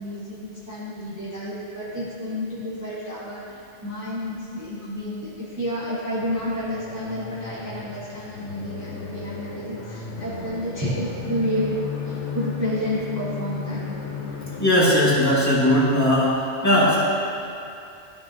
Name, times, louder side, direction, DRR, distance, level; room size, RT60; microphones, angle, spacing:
voice 1, 0.0-11.7 12.0-13.8, equal, 15° right, -9 dB, 1.2 m, -30 dB
sound 1, 6.2-14.7, left 4 dB, 85° left, 1.2 m, -34 dB
voice 2, 14.6-17.0, left 1 dB, 15° left, -9 dB, 1.9 m, -19 dB
13.0 x 6.3 x 2.8 m, 2.6 s
omnidirectional pair, 1.2 m